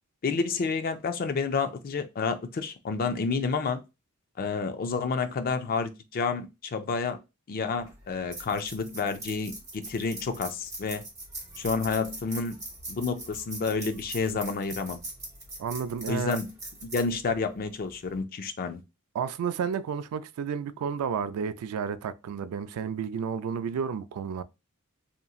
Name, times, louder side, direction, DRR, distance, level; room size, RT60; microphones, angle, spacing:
voice 1, 0.2-3.8 4.4-7.2 7.5-11.0 11.6-12.6 12.9-15.0 16.1-16.5 16.9-18.8, left 4 dB, 40° left, 0.4 m, -29 dB
sound 1, 7.8-18.2, right 2 dB, 15° right, 1.2 m, -42 dB
voice 2, 15.6-16.4 19.1-24.4, right 7 dB, 80° right, 0.3 m, -31 dB
2.9 x 2.5 x 2.3 m
head